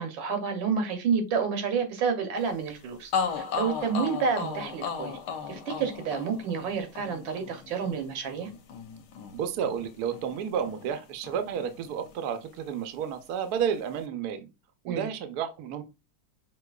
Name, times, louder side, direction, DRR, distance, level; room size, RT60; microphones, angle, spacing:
voice 1, 0.0-5.1 5.5-8.5 14.9-15.1, right 6 dB, 90° right, 6 dB, 1.6 m, -29 dB
sound 1, 2.7-2.8 3.1-11.0 11.2-12.4, left 6 dB, 70° left, 1.1 m, -36 dB
voice 2, 9.3-14.5 14.8-15.8, right 8 dB, 65° right, 8 dB, 1.0 m, -31 dB
5.8 x 2.8 x 2.3 m, 0.26 s
omnidirectional pair, 2.0 m